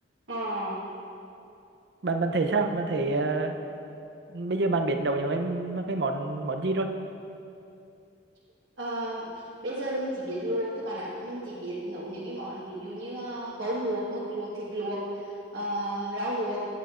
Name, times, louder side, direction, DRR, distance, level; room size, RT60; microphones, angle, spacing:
voice 1, 0.3-0.8 8.8-16.7, right 1 dB, 80° right, -7 dB, 1.3 m, -33 dB
voice 2, 2.0-3.5 4.3-6.9, right 3 dB, 65° right, 6 dB, 0.5 m, -27 dB
10.0 x 9.3 x 2.4 m, 2.6 s
head